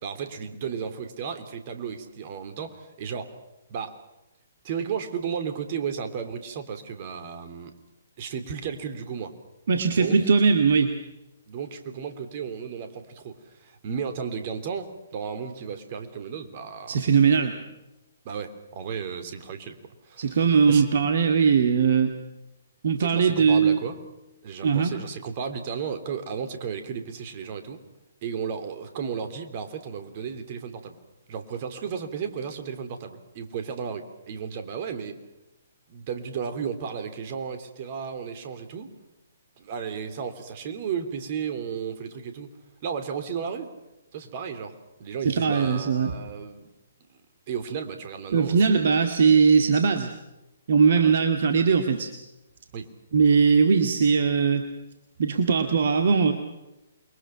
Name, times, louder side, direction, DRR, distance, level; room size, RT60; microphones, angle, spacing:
voice 1, 0.0-3.3 3.7-4.0 4.6-7.7 8.2-9.3 9.9-10.2 11.5-17.0 18.2-19.8 20.0-20.4 20.7-20.9 23.0-24.0 24.4-27.8 28.2-31.0 31.3-35.2 35.9-38.9 39.6-42.5 42.8-43.7 44.1-46.7 47.5-48.9 50.9-51.1 52.7-52.9, right 6 dB, 40° right, 8 dB, 3.2 m, -34 dB
voice 2, 9.7-10.9 16.9-17.6 20.2-22.2 22.8-23.8 24.6-25.0 45.3-46.1 48.3-50.1 50.7-52.1 53.1-54.6 55.2-56.3, right 5 dB, 55° right, 6 dB, 2.1 m, -20 dB
28.5 x 23.0 x 5.9 m, 0.95 s
figure-of-eight pair, 130°, 0 cm